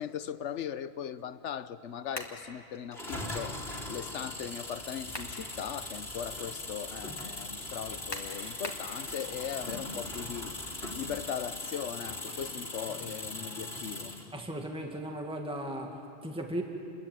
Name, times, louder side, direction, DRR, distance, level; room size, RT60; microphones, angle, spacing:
voice 1, 0.0-3.6 3.9-10.5 10.9-14.1, left 8 dB, 70° left, 14 dB, 1.1 m, -39 dB
sound 1, 2.1-2.4 4.8-5.4 5.9-6.0 8.1-8.9, left 1 dB, 20° left, 2.4 m, -40 dB
sound 2, 2.9-14.3, left 2 dB, 55° left, 3.2 m, -40 dB
sound 3, 4.8-11.5, equal, 65° right, 7.2 m, -54 dB
voice 2, 14.3-16.6, right 1 dB, 5° right, 2 dB, 1.9 m, -37 dB
29.0 x 22.0 x 9.0 m, 2.5 s
omnidirectional pair, 1.3 m